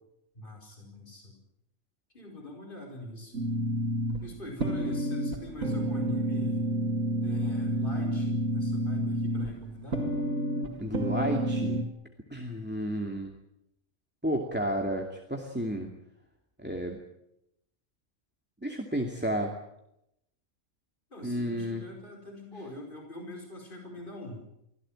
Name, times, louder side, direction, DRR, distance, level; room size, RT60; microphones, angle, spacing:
voice 1, 0.4-1.4 2.1-3.5 4.2-6.7 7.2-10.1 21.1-24.4, left 1 dB, 40° left, 2 dB, 5.1 m, -42 dB
sound 1, 3.3-11.8, right 1 dB, 80° right, 2.9 m, -30 dB
voice 2, 10.8-11.8 12.3-13.3 14.2-15.9 16.6-17.0 18.6-19.5 21.2-21.8, equal, 5° right, 2 dB, 2.4 m, -31 dB
25.0 x 17.0 x 8.8 m, 0.82 s
omnidirectional pair, 1.4 m